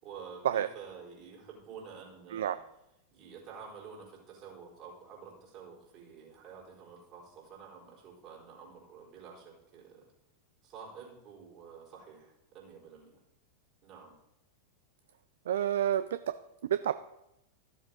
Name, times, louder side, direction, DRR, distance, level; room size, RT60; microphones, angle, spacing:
voice 1, 0.0-2.6 3.1-10.1 10.6-13.2 13.8-14.1, right 6 dB, 40° right, -3 dB, 4.2 m, -49 dB
voice 2, 15.5-16.4 16.7-16.9, right 10 dB, 60° right, 12 dB, 0.4 m, -29 dB
14.0 x 7.4 x 4.0 m, 0.85 s
figure-of-eight pair, 90°, 0 cm